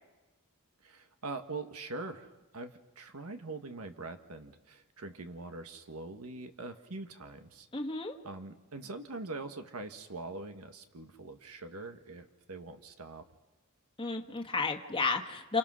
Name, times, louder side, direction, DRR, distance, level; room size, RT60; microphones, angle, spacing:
voice 1, 0.8-7.7 8.2-13.2, right 3 dB, 85° right, 7 dB, 1.6 m, -43 dB
voice 2, 7.7-8.2 14.0-15.6, left 4 dB, 25° left, 3 dB, 1.4 m, -32 dB
30.0 x 28.0 x 6.4 m, 1.1 s
head